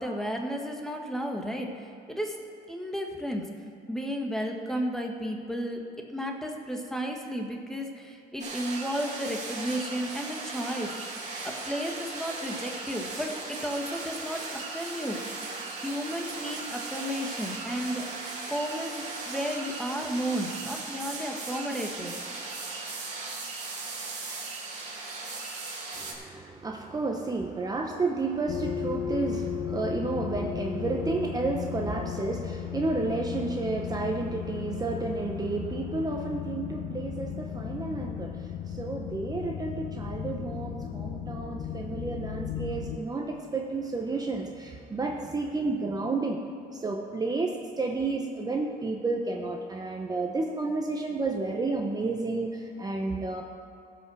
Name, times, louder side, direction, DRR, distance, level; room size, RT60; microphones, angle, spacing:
voice 1, 0.0-2.4 2.7-3.5 3.9-11.0 11.4-14.5 14.7-15.2 15.8-18.1 18.5-22.1, equal, 5° left, 2 dB, 1.4 m, -33 dB
sound 1, 8.4-26.1, right 3 dB, 45° right, 2.8 m, -37 dB
voice 2, 25.9-46.4 46.7-53.4, right 3 dB, 20° right, 1 dB, 1.0 m, -31 dB
sound 2, 28.5-43.0, left 8 dB, 55° left, 0.9 m, -35 dB
15.5 x 5.7 x 6.3 m, 2.5 s
cardioid pair, 110°, 17 cm